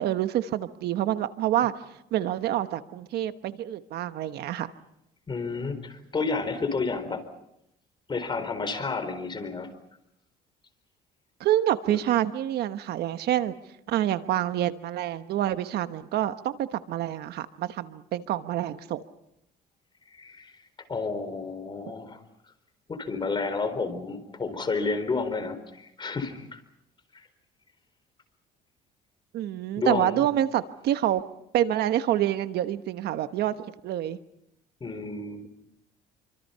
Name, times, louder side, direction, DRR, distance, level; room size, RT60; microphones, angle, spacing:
voice 1, 0.0-1.7 2.1-4.7 11.4-13.5 13.9-19.0 29.3-31.2 31.5-33.5 33.8-34.2, right 12 dB, 75° right, 11 dB, 1.2 m, -27 dB
voice 2, 5.3-7.2 8.1-9.7 20.1-20.5 20.9-22.2 22.9-26.6 27.1-27.2 29.8-30.2 34.8-35.5, left 4 dB, 25° left, 9 dB, 4.2 m, -31 dB
27.5 x 25.0 x 5.7 m, 0.81 s
cardioid pair, 110°, 17 cm